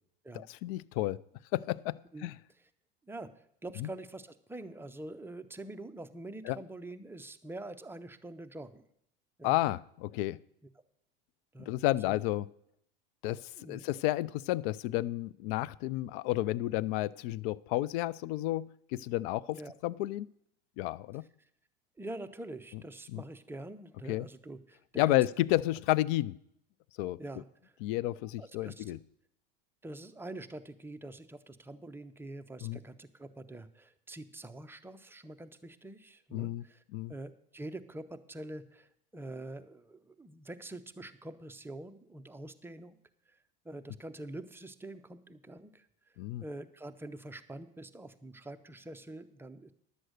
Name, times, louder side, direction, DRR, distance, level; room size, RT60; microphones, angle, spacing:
voice 1, 0.3-1.2 1.5-2.4 3.8-3.9 6.5-6.6 9.4-10.4 11.7-12.5 13.2-13.4 13.7-20.3 20.8-21.2 23.1-23.2 24.1-24.2 25.0-26.3 27.0-27.2 27.8-29.0 32.6-32.8 36.3-36.6 36.9-37.1 46.2-46.4, left 16 dB, 60° left, 21 dB, 0.4 m, -31 dB
voice 2, 3.1-8.8 9.4-9.6 11.5-12.2 13.6-13.8 19.5-19.7 21.4-21.5 22.0-25.3 27.2-27.7 28.4-29.0 29.8-36.8 37.1-43.0 43.3-43.4 43.6-45.9 46.4-49.7, right 2 dB, 10° right, 8 dB, 0.6 m, -45 dB
11.0 x 7.8 x 6.5 m, 0.72 s
supercardioid pair, 110°, 30 cm